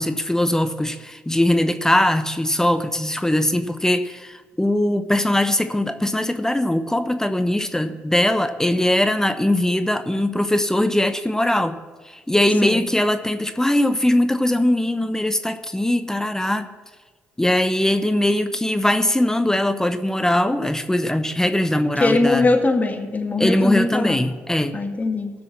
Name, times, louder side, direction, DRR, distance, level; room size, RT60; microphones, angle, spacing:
voice 1, 0.0-16.7 17.4-22.5 23.4-24.8, left 1 dB, 10° left, 10 dB, 0.8 m, -21 dB
voice 2, 22.0-24.2 24.7-25.3, left 2 dB, 30° left, 4 dB, 2.1 m, -21 dB
14.5 x 6.2 x 7.4 m, 1.3 s
hypercardioid pair, 50°, 6 cm